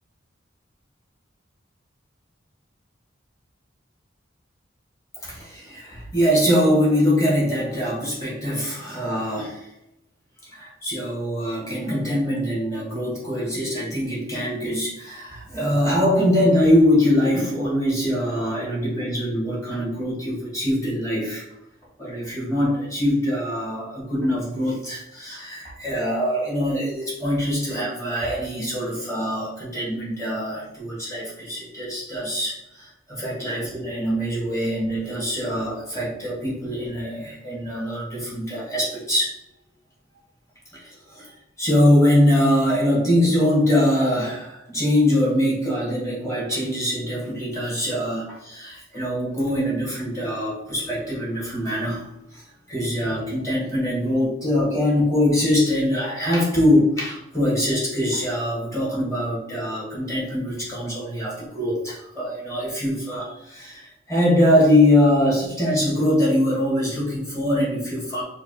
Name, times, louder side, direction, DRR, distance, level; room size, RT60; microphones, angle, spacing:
voice 1, 5.2-9.7 10.4-21.4 22.0-39.3 40.7-41.3 41.6-52.0 52.3-68.2, left 1 dB, 15° left, -6 dB, 1.5 m, -23 dB
5.4 x 2.3 x 2.9 m, 0.84 s
head